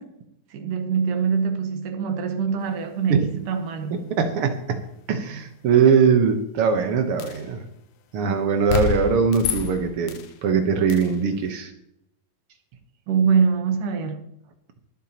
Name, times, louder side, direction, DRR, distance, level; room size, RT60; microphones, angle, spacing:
voice 1, 0.5-3.9 5.9-6.0 13.1-14.3, right 6 dB, 70° right, 2.4 m, -24 dB
voice 2, 4.1-4.8 5.1-7.6 8.1-11.7, right 6 dB, 90° right, 1.2 m, -21 dB
sound 1, 7.2-7.5 8.7-10.3 10.9-11.2, left 9 dB, 70° left, 2.0 m, -28 dB
23.0 x 8.1 x 2.9 m
omnidirectional pair, 4.1 m